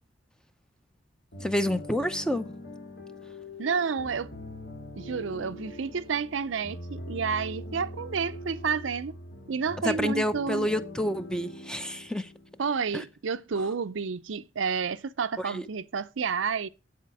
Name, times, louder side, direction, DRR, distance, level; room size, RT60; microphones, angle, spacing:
sound 1, 1.3-13.0, equal, 60° left, 2.0 m, -42 dB
voice 1, 1.4-2.5 9.8-12.3 12.9-13.0 15.4-15.7, equal, 5° left, 0.7 m, -29 dB
voice 2, 3.6-4.3 5.0-9.1 9.5-10.7 12.6-16.7, right 5 dB, 80° right, 0.5 m, -30 dB
8.5 x 7.6 x 4.8 m
head